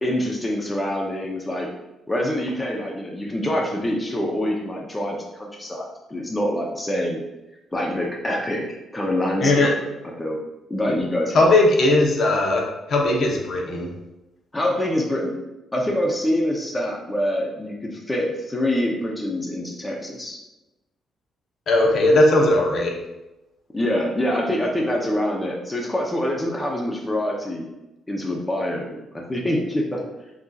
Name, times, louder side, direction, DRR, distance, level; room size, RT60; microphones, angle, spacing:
voice 1, 0.0-1.7 2.1-7.2 7.7-9.7 10.2-10.4 10.7-11.5 14.5-15.3 15.7-20.4 23.7-27.6 28.1-30.0, left 1 dB, 15° left, -1 dB, 0.7 m, -25 dB
voice 2, 9.4-9.7 10.9-11.0 11.3-13.9 21.7-23.0, left 2 dB, 60° left, 0 dB, 1.0 m, -18 dB
5.9 x 2.8 x 2.4 m, 0.99 s
cardioid pair, 90°, 0 cm